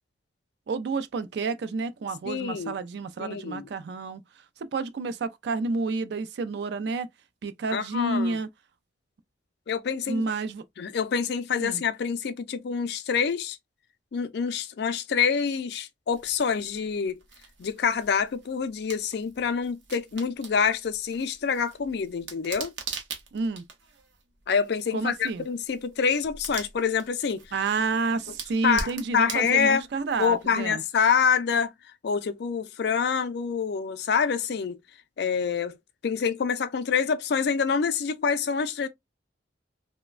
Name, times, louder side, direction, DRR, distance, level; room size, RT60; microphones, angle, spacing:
voice 1, 0.7-4.2 4.6-7.1 7.4-8.5 10.1-10.6 11.6-11.8 23.3-23.6 24.9-25.4 27.5-30.8, right 3 dB, 65° right, 0.4 m, -29 dB
voice 2, 2.3-2.7 3.2-3.6 7.7-8.4 9.7-10.2 10.8-13.6 14.1-17.2 17.6-22.7 24.5-27.4 28.6-29.8 30.2-31.7 32.0-34.8 35.2-35.8 36.0-38.9, left 6 dB, 65° left, 0.4 m, -26 dB
sound 1, 16.1-30.7, right 5 dB, 90° right, 0.7 m, -43 dB
3.0 x 2.1 x 2.3 m
head